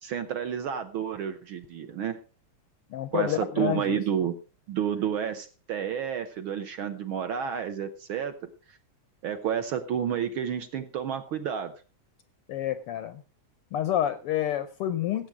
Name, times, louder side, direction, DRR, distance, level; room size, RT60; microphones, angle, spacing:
voice 1, 0.0-2.2 3.1-4.3 4.7-8.5 9.2-11.7, right 8 dB, 65° right, 9 dB, 1.3 m, -30 dB
voice 2, 2.9-4.0 12.5-13.2 13.7-15.3, left 11 dB, 75° left, 12 dB, 1.3 m, -29 dB
16.0 x 8.1 x 4.7 m, 0.35 s
omnidirectional pair, 3.4 m